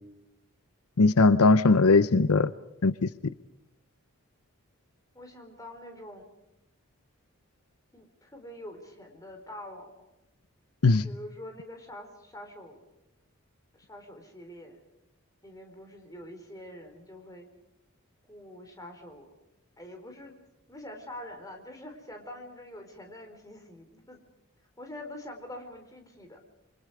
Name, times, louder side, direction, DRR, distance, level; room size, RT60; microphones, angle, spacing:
voice 1, 1.0-2.5 2.8-3.1 10.8-11.0, left 3 dB, 80° left, 15 dB, 0.7 m, -20 dB
voice 2, 5.1-6.3 7.9-9.9 11.0-12.8 13.7-14.8 15.4-17.5 18.3-19.3 19.8-20.3 20.7-24.2 24.8-26.4, left 1 dB, 15° left, 4 dB, 4.3 m, -45 dB
28.5 x 24.5 x 4.9 m, 0.93 s
head